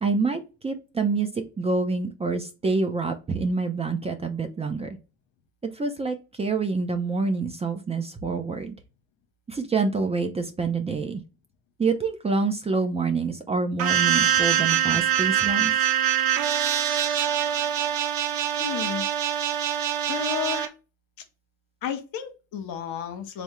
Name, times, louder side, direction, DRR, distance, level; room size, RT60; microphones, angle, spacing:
voice 1, 0.0-5.0 5.7-8.7 9.5-11.2 11.8-15.8, right 4 dB, 15° right, 5 dB, 0.5 m, -27 dB
sound 1, 13.8-20.7, right 10 dB, 60° right, 0.7 m, -24 dB
voice 2, 18.6-19.1 20.1-20.7 21.8-23.4, left 8 dB, 60° left, 7 dB, 0.9 m, -32 dB
3.5 x 2.1 x 4.2 m, 0.30 s
hypercardioid pair, 80°, 39 cm